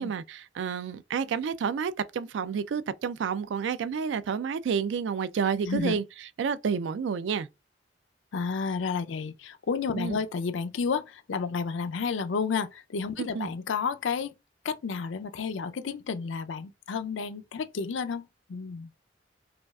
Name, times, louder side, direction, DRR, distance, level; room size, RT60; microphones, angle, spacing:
voice 1, 0.0-6.0 6.4-7.5 9.9-10.2 13.2-13.5, right 6 dB, 70° right, 0.3 m, -30 dB
voice 2, 5.6-6.0 8.3-14.3 14.6-18.9, left 5 dB, 80° left, 0.4 m, -31 dB
5.0 x 2.3 x 2.3 m
head